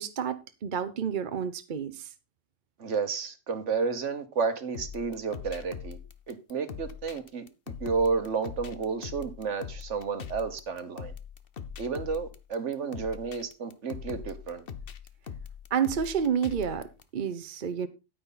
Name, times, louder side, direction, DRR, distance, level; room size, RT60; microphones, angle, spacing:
voice 1, 0.0-2.1 15.7-17.9, right 7 dB, 45° right, 0.9 m, -30 dB
voice 2, 2.8-6.0 6.3-7.4 7.8-11.1 11.8-14.6, right 5 dB, 65° right, 1.6 m, -31 dB
sound 1, 4.7-17.0, left 7 dB, 50° left, 1.0 m, -42 dB
9.6 x 9.5 x 4.0 m
omnidirectional pair, 1.3 m